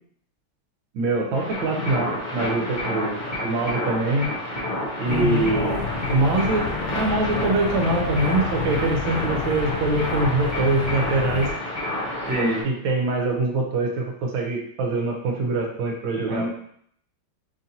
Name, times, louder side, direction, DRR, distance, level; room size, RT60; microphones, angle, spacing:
voice 1, 0.9-4.3 5.0-6.7 6.9-11.5 12.6-16.5, right 2 dB, 75° right, 1 dB, 1.6 m, -24 dB
sound 1, 1.3-12.6, left 1 dB, 55° left, 0.5 m, -29 dB
sound 2, 5.1-11.5, left 6 dB, 90° left, 1.5 m, -31 dB
voice 2, 5.1-5.5 12.3-12.7 16.3-16.5, left 1 dB, 60° right, -4 dB, 1.5 m, -25 dB
5.7 x 2.6 x 2.8 m, 0.66 s
omnidirectional pair, 2.2 m